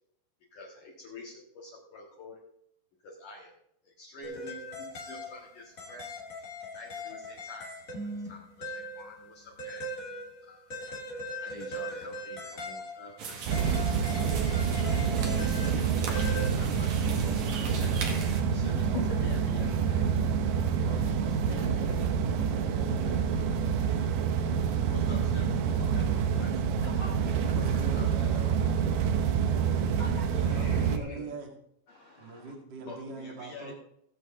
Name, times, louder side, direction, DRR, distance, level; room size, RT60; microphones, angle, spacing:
voice 1, 0.5-2.4 3.0-3.5 3.8-6.1 6.7-8.0 8.3-9.8 10.4-10.6 11.4-13.7 16.0-18.1 18.5-20.1 20.8-22.0 22.4-23.2 24.9-26.5 27.9-28.8 30.4-31.3 32.9-33.7, left 3 dB, 55° left, -4 dB, 3.1 m, -47 dB
sound 1, 4.2-16.5, left 1 dB, 35° left, 1.3 m, -40 dB
sound 2, 13.2-18.4, right 5 dB, 55° right, 2.5 m, -40 dB
sound 3, 13.5-31.0, right 7 dB, 75° right, 2.0 m, -27 dB
voice 2, 21.1-21.5 22.3-23.0 23.5-25.1 26.5-27.9 28.3-28.7 29.7-30.6 31.9-32.5, left 3 dB, 85° left, 2 dB, 1.1 m, -46 dB
voice 3, 27.5-29.5 30.2-31.5 32.2-33.7, right 3 dB, 35° right, 1 dB, 2.2 m, -42 dB
19.5 x 7.8 x 3.8 m, 0.72 s
omnidirectional pair, 4.9 m